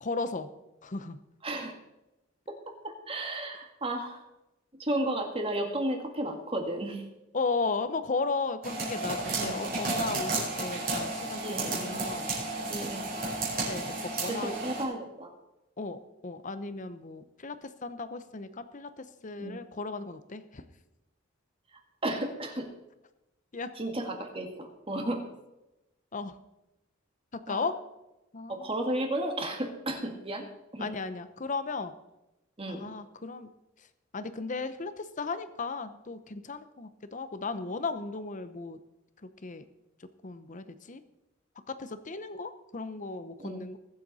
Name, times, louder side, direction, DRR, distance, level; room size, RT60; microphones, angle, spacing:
voice 1, 0.0-0.5 0.8-1.2 7.3-12.3 13.7-14.6 15.8-20.6 23.5-23.7 26.1-26.4 27.3-27.7 28.3-28.7 30.8-31.9 32.7-33.5 33.8-33.9 34.1-38.8 39.2-39.6 40.0-41.0 41.7-43.8, left 3 dB, 40° left, 11 dB, 0.8 m, -35 dB
voice 2, 2.8-4.2 4.8-7.0 9.3-9.6 11.4-12.0 12.7-13.0 14.3-15.3 19.4-19.6 22.0-22.7 23.8-25.2 27.5-27.6 28.5-30.4 30.7-30.9 32.6-32.8 43.4-43.6, right 1 dB, 30° right, 3 dB, 1.9 m, -33 dB
sound 1, 8.6-14.8, right 2 dB, 45° right, 4.9 m, -32 dB
21.0 x 7.7 x 4.2 m, 0.97 s
head